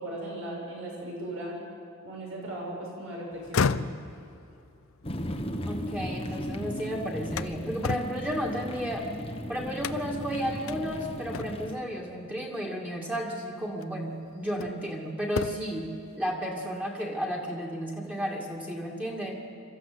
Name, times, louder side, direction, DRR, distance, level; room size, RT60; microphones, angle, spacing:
voice 1, 0.0-1.6 2.0-3.7, right 1 dB, 85° right, -2 dB, 6.7 m, -37 dB
sound 1, 3.3-6.5 6.9-9.2 9.8-10.3 10.7-10.8 11.3-11.8 13.1-13.2 13.8-14.9 15.2-15.8, left 5 dB, 90° left, 0.6 m, -34 dB
sound 2, 5.0-11.8, equal, 30° left, 1.3 m, -36 dB
voice 2, 5.7-9.1 9.5-15.9 16.1-19.4, equal, 5° right, -2 dB, 2.3 m, -33 dB
24.0 x 14.0 x 8.0 m, 2.6 s
head